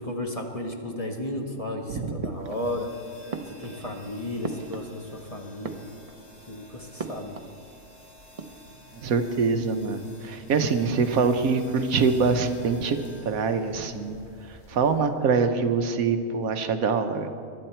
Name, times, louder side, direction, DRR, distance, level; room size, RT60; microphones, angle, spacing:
voice 1, 0.0-2.9 3.4-5.8 6.5-7.4 10.5-10.6, left 1 dB, 25° left, 2 dB, 1.1 m, -34 dB
voice 2, 1.9-2.3 9.0-13.0 13.2-14.2 14.5-17.3, right 5 dB, 70° right, 7 dB, 1.3 m, -24 dB
sound 1, 2.2-2.9 3.3-5.2 5.5-6.4 7.0-7.6 7.9-8.0 8.2-8.9, right 4 dB, 40° right, 0.5 m, -38 dB
sound 2, 2.4-15.3, left 2 dB, 55° left, 2.1 m, -47 dB
24.0 x 11.0 x 4.4 m, 2.3 s
omnidirectional pair, 1.6 m